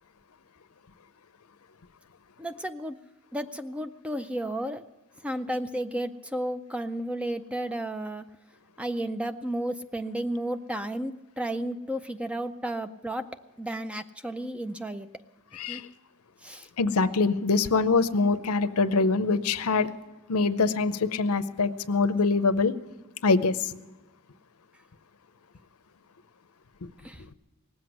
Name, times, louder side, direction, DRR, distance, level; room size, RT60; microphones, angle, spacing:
voice 1, 2.4-3.0 3.3-4.8 5.2-8.2 8.8-13.3 13.6-15.1 15.7-15.8 16.4-16.7 27.0-27.2, right 1 dB, 5° right, 10 dB, 0.4 m, -32 dB
voice 2, 16.8-19.9 20.3-22.7 23.2-23.7, left 4 dB, 75° left, 13 dB, 0.7 m, -24 dB
18.5 x 7.9 x 9.3 m, 1.1 s
head